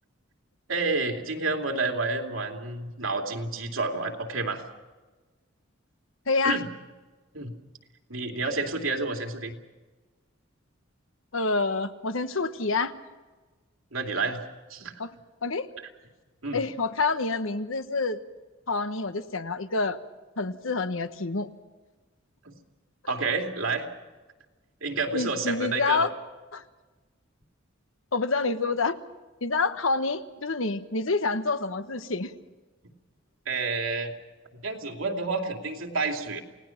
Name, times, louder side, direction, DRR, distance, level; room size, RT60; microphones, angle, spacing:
voice 1, 0.7-4.6 6.4-6.7 7.3-7.5 8.1-9.5 13.9-14.4 14.7-14.9 16.4-16.6 22.4-22.5 23.1-23.9 24.8-26.1 33.5-34.1 34.5-36.4, right 3 dB, 90° right, 2 dB, 2.8 m, -29 dB
voice 2, 6.3-6.6 11.3-12.9 15.0-15.1 15.4-15.7 16.5-18.2 18.7-20.0 20.4-21.5 25.1-26.1 26.5-26.6 28.1-29.0 29.4-32.3, left 3 dB, 80° left, 10 dB, 1.2 m, -27 dB
29.0 x 18.5 x 5.9 m, 1.3 s
head